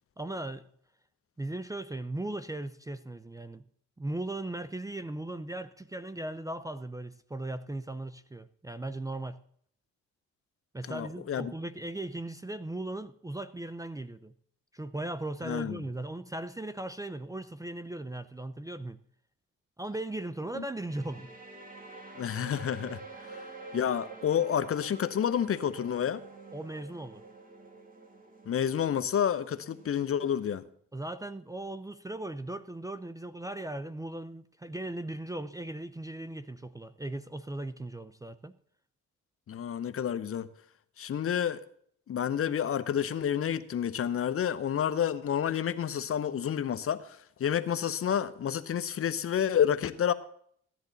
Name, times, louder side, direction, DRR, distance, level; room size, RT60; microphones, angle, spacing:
voice 1, 0.2-0.7 1.4-3.6 4.0-9.4 10.7-14.3 14.7-19.0 19.8-21.3 26.5-27.2 30.9-38.6, right 2 dB, 10° right, 0.5 m, -38 dB
voice 2, 10.9-11.5 15.4-15.8 20.6-20.7 22.2-23.0 23.7-26.2 28.5-30.6 39.5-40.5 41.0-41.6 42.1-50.1, left 9 dB, 50° left, 0.8 m, -29 dB
sound 1, 20.9-30.6, right 3 dB, 25° right, 2.1 m, -48 dB
16.0 x 10.5 x 4.0 m
cardioid pair, 90°, 30 cm